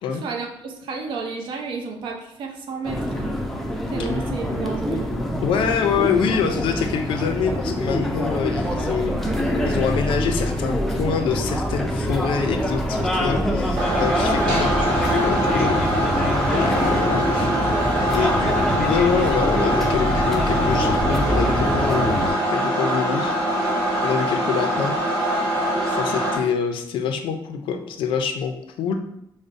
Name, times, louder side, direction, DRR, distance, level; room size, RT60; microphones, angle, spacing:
voice 1, 0.1-3.4 3.9-5.1 17.1-17.5, right 4 dB, 70° right, 2 dB, 0.6 m, -32 dB
sound 1, 2.8-22.3, equal, 5° left, 0.4 m, -24 dB
voice 2, 5.4-15.8 16.5-17.5 18.1-23.3 24.0-24.9 25.9-28.9, left 7 dB, 75° left, 6 dB, 0.4 m, -26 dB
sound 2, 13.8-26.4, equal, 55° right, 1.2 m, -23 dB
5.0 x 2.0 x 2.5 m, 0.79 s
cardioid pair, 160°, 9 cm